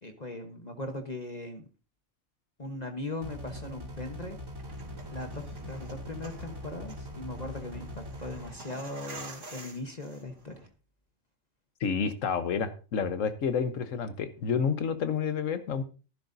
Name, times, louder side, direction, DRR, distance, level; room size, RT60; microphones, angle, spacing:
voice 1, 0.0-1.7 2.6-4.4 5.1-10.7, left 2 dB, 35° left, 4 dB, 1.2 m, -39 dB
sound 1, 3.2-8.5, equal, 80° right, 3.3 m, -42 dB
sound 2, 4.5-10.7, right 2 dB, 65° right, 2.8 m, -48 dB
voice 2, 11.8-15.8, left 6 dB, 70° left, 11 dB, 1.4 m, -29 dB
14.5 x 12.0 x 2.7 m, 0.35 s
omnidirectional pair, 1.4 m